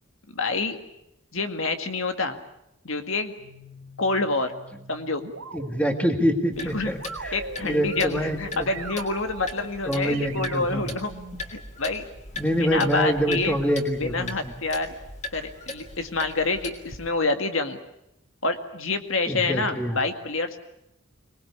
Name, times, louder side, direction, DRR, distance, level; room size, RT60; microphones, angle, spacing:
voice 1, 0.3-0.8 1.3-2.4 2.8-3.3 4.0-4.5 4.9-5.2 6.6-6.9 7.3-11.1 11.5-12.0 12.6-13.6 14.0-14.9 15.3-17.8 18.4-20.6, left 3 dB, 65° left, 7 dB, 2.0 m, -27 dB
sound 1, 3.4-12.0, right 3 dB, 85° right, 2.3 m, -42 dB
voice 2, 5.5-8.7 9.9-10.9 12.4-14.5 19.3-20.0, equal, 5° left, 5 dB, 1.9 m, -26 dB
Clock, 6.5-17.1, left 2 dB, 30° left, 3.1 m, -39 dB
25.5 x 20.0 x 8.4 m, 0.82 s
head